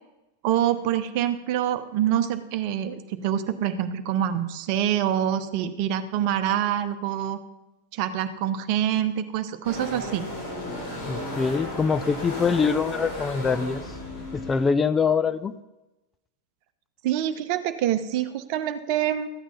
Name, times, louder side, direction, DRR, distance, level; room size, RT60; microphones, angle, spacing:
voice 1, 0.4-7.4 7.9-10.2 17.0-19.3, right 11 dB, 45° right, 10 dB, 1.0 m, -26 dB
sound 1, 9.6-14.7, left 1 dB, 45° left, 4.3 m, -34 dB
voice 2, 11.1-14.0 14.3-15.5, left 5 dB, 15° left, 11 dB, 0.5 m, -24 dB
14.0 x 8.7 x 5.5 m, 1.0 s
figure-of-eight pair, 90°, 0 cm